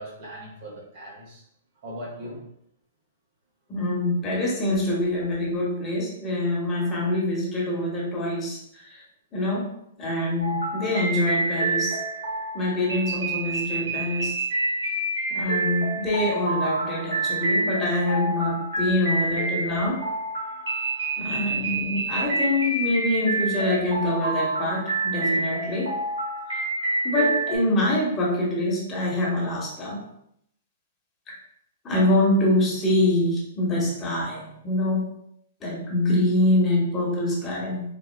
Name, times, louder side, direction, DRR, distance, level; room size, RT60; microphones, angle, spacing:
voice 1, 0.0-1.4 1.8-2.5 13.8-13.9 20.5-20.6, equal, 50° right, -3 dB, 1.1 m, -39 dB
voice 2, 3.7-9.0 9.3-9.7 10.0-12.0 12.5-14.3 15.3-20.0 21.2-25.9 26.5-26.6 27.0-30.0 31.3-31.4 31.8-35.0 35.6-37.8, left 1 dB, 25° left, -4 dB, 1.1 m, -25 dB
sound 1, 10.4-27.6, right 2 dB, 75° right, 1.3 m, -28 dB
4.1 x 2.3 x 2.2 m, 0.75 s
hypercardioid pair, 120°, 0 cm